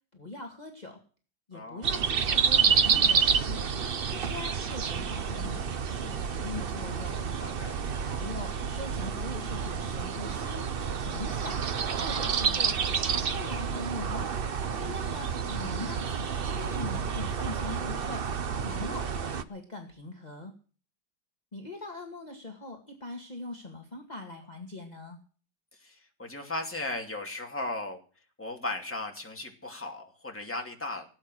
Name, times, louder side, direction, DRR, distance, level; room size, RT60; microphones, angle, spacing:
voice 1, 0.1-1.0 1.5-3.7 4.1-7.2 8.0-10.7 11.1-11.6 12.0-14.3 14.7-18.3 18.6-20.5 21.5-25.2, left 2 dB, 20° left, 2 dB, 2.1 m, -41 dB
voice 2, 1.5-1.9 7.4-7.8 18.7-18.9 25.8-28.0 28.4-31.0, left 2 dB, 5° left, 2 dB, 2.5 m, -36 dB
sound 1, 1.8-19.4, right 6 dB, 65° right, 0.5 m, -29 dB
18.0 x 8.9 x 6.4 m, 0.39 s
omnidirectional pair, 2.1 m